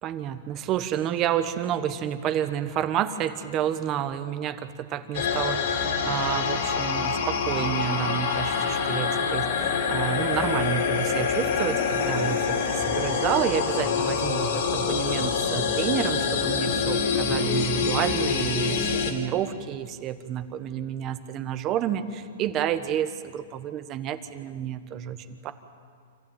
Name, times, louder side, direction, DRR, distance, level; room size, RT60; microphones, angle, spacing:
voice 1, 0.0-25.5, right 10 dB, 30° right, 11 dB, 1.1 m, -30 dB
sound 1, 5.1-19.1, left 5 dB, 65° left, 3.2 m, -26 dB
26.5 x 15.5 x 9.2 m, 2.1 s
hypercardioid pair, 155°, 0 cm